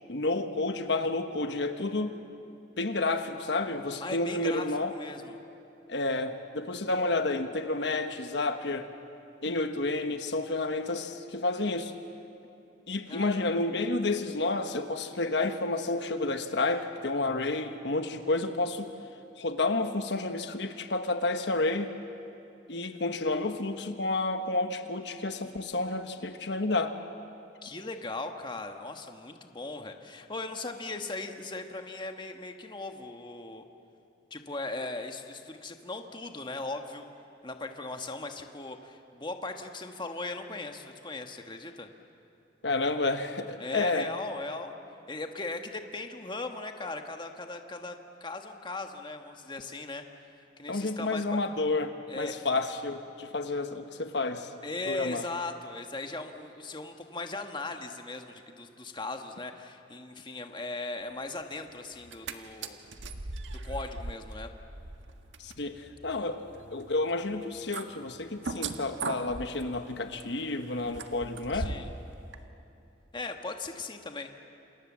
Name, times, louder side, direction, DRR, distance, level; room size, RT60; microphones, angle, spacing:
voice 1, 0.1-2.2 2.8-4.9 5.9-8.9 9.4-11.9 12.9-18.9 19.4-21.9 22.7-27.0 42.6-44.1 50.7-54.5 54.9-55.2 65.4-71.7, left 2 dB, 65° left, 7 dB, 1.3 m, -30 dB
voice 2, 4.0-5.4 13.1-13.5 27.6-33.6 34.3-37.1 37.4-41.9 43.6-44.7 45.1-47.9 48.2-50.0 50.6-51.4 52.1-52.3 54.6-62.8 63.6-64.5 66.2-66.3 71.5-71.9 73.1-74.4, left 2 dB, 25° left, 5 dB, 1.5 m, -38 dB
sound 1, 61.9-62.3 62.6-72.0 72.3-72.4, right 3 dB, 90° right, 1.5 m, -40 dB
28.5 x 28.0 x 7.5 m, 2.8 s
head